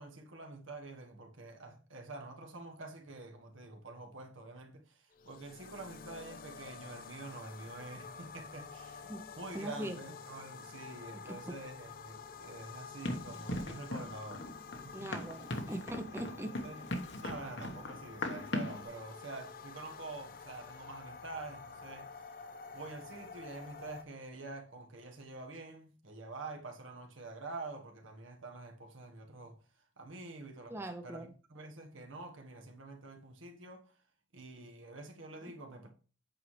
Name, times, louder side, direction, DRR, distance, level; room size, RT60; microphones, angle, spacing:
voice 1, 0.0-14.5 14.8-15.1 16.1-16.8 17.2-22.1 22.7-29.6 30.0-33.9 34.3-35.9, right 2 dB, 80° right, 1.4 m, -47 dB
sound 1, 5.1-24.0, left 5 dB, 45° left, 0.5 m, -49 dB
voice 2, 9.5-10.0 11.2-11.5 14.9-16.5 30.7-31.3 35.4-35.5, right 1 dB, 10° right, 0.6 m, -41 dB
Run, 13.0-18.9, left 1 dB, 65° left, 1.2 m, -39 dB
8.6 x 5.6 x 3.2 m
head